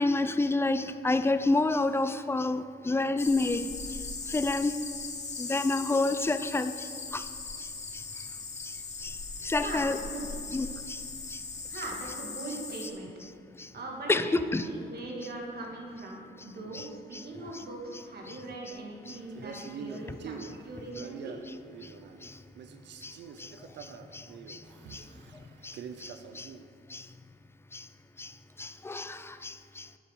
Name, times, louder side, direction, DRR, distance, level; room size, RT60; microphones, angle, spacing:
voice 1, 0.0-4.0 4.3-4.8 5.4-7.3 7.6-8.0 8.6-8.7 9.0-10.0 10.5-11.0 11.3-11.4 13.6-13.7 14.1-14.7 16.7-16.9 17.1-17.2 18.3-18.4 19.1-19.2 19.5-19.7 21.8-21.9 22.2-22.4 23.0-23.5 23.8-24.6 24.9-25.0 25.6-26.5 26.9-27.1 27.7-27.9 28.2-28.3 28.6-29.9, left 2 dB, 15° left, 11 dB, 0.4 m, -30 dB
sound 1, 3.2-12.9, left 4 dB, 40° left, 1.1 m, -39 dB
voice 2, 9.6-10.3 11.7-13.1 13.7-21.3, right 2 dB, 60° right, -1 dB, 2.1 m, -40 dB
Male speech man speaking, 19.3-22.3 22.6-26.7, right 6 dB, 80° right, 0.6 m, -45 dB
9.4 x 7.6 x 4.7 m, 2.4 s
cardioid pair, 85°, 18 cm